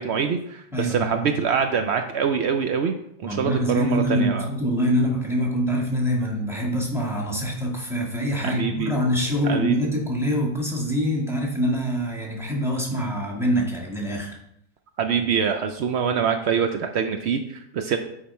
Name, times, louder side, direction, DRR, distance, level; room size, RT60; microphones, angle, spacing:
voice 1, 0.0-4.5 8.4-9.0 9.4-9.8 15.0-18.0, right 6 dB, 85° right, 6 dB, 0.5 m, -25 dB
voice 2, 0.7-1.3 3.2-14.3, equal, ahead, -2 dB, 1.5 m, -25 dB
8.8 x 4.9 x 4.3 m, 0.77 s
omnidirectional pair, 1.8 m